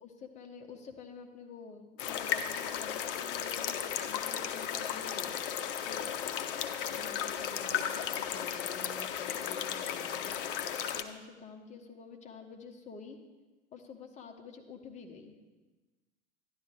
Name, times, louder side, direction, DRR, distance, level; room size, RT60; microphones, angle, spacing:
voice 1, 0.0-5.6 5.9-6.6 6.9-10.4 10.9-13.2 13.7-15.4, left 4 dB, 20° left, 3 dB, 1.1 m, -49 dB
sound 1, 2.0-11.0, left 9 dB, 50° left, 0.7 m, -35 dB
12.5 x 10.5 x 3.5 m, 1.2 s
figure-of-eight pair, 90°, 35 cm